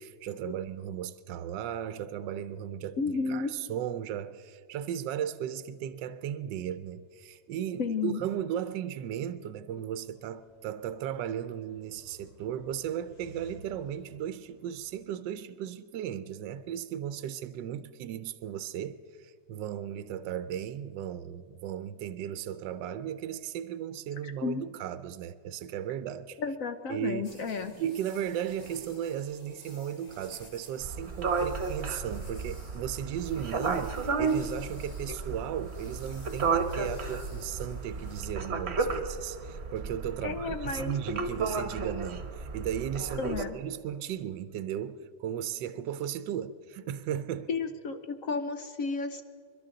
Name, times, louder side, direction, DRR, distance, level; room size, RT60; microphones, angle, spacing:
voice 1, 0.0-3.0 3.3-26.4 26.9-27.4 27.7-47.5, right 10 dB, 80° right, 1.3 m, -36 dB
voice 2, 3.0-3.5 7.8-8.2 24.2-24.6 26.4-27.7 40.2-40.9 43.2-43.6 47.5-49.2, left 4 dB, 60° left, 0.9 m, -32 dB
sound 1, 9.9-15.0, left 1 dB, 85° left, 5.1 m, -56 dB
sound 2, 27.2-38.2, left 1 dB, 25° left, 1.5 m, -55 dB
sound 3, 30.8-43.4, right 4 dB, 40° right, 1.2 m, -33 dB
28.5 x 12.0 x 3.9 m
omnidirectional pair, 2.0 m